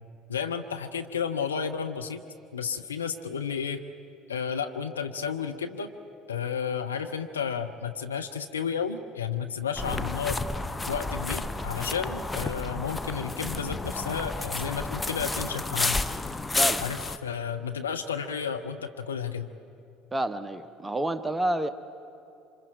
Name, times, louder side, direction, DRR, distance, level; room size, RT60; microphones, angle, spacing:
voice 1, 0.3-2.2 2.5-3.8 4.3-5.9 6.3-10.4 10.9-16.0 16.8-19.5, left 7 dB, 80° left, 6 dB, 0.7 m, -32 dB
sound 1, 9.8-17.2, left 2 dB, 15° left, 0.8 m, -31 dB
voice 2, 20.1-21.7, right 1 dB, 15° right, 11 dB, 0.9 m, -29 dB
27.5 x 25.5 x 4.6 m, 2.7 s
figure-of-eight pair, 60°, 0 cm